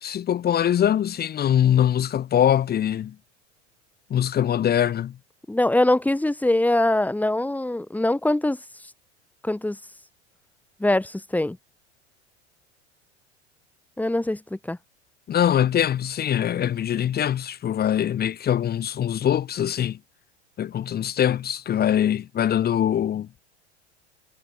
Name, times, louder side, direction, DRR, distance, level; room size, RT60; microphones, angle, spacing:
voice 1, 0.0-3.2 4.1-5.1 15.3-20.0 20.6-23.3, left 10 dB, 25° left, 1.9 m, -23 dB
voice 2, 5.5-8.6 9.4-9.8 10.8-11.6 14.0-14.8, left 1 dB, 5° left, 2.6 m, -23 dB
figure-of-eight pair, 80°, 35 cm